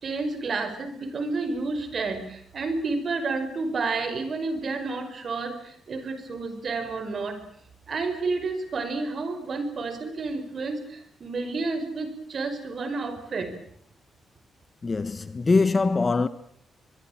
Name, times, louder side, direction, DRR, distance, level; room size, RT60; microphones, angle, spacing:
voice 1, 0.0-7.4 7.9-13.5, right 3 dB, 40° right, 5.2 m, -30 dB
voice 2, 14.8-16.3, left 3 dB, 25° left, 1.0 m, -22 dB
24.0 x 23.0 x 8.7 m
wide cardioid pair, 155°, 0 cm